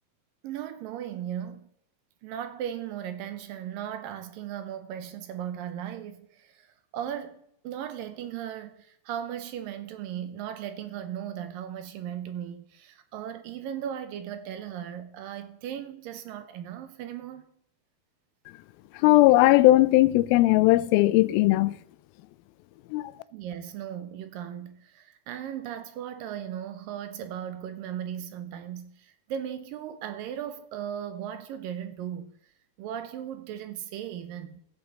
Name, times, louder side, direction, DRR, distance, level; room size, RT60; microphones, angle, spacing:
voice 1, 0.4-1.7 2.2-6.7 6.9-17.5 23.3-32.3 32.8-34.6, right 10 dB, 75° right, 2.4 m, -37 dB
voice 2, 18.9-21.8 22.9-23.1, left 17 dB, 85° left, 2.4 m, -19 dB
14.5 x 8.7 x 4.0 m
omnidirectional pair, 4.3 m